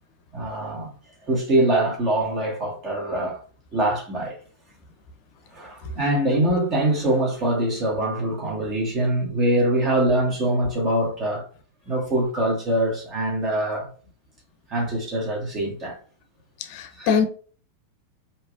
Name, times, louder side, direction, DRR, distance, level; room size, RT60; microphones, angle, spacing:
voice 1, 0.3-0.9 1.3-3.4 3.7-4.3 5.5-11.5 11.9-13.9 14.7-16.0 16.9-17.2, right 1 dB, 30° right, 1.6 m, -23 dB
voice 2, 16.7-17.3, left 6 dB, 45° left, 0.6 m, -22 dB
4.3 x 2.8 x 2.4 m
figure-of-eight pair, 90°, 0 cm